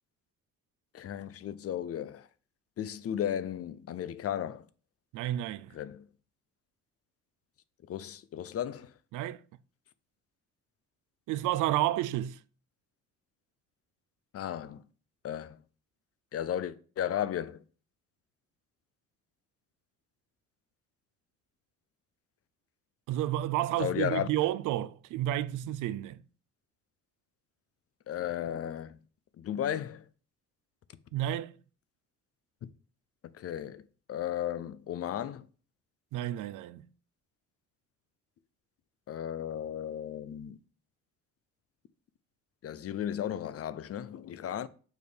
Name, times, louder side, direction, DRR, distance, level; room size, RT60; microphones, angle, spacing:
voice 1, 0.9-2.3 2.8-4.7 5.7-6.1 7.9-8.9 14.3-14.8 15.2-15.6 16.3-17.6 23.8-24.3 28.1-29.0 29.4-30.1 33.3-33.8 34.1-35.5 39.1-40.6 42.6-44.7, left 10 dB, 50° left, 0.6 m, -34 dB
voice 2, 5.1-5.7 9.1-9.4 11.3-12.4 23.1-26.2 31.1-31.5 36.1-36.8, right 13 dB, 85° right, 0.5 m, -31 dB
6.5 x 3.4 x 5.1 m
cardioid pair, 90°, 30 cm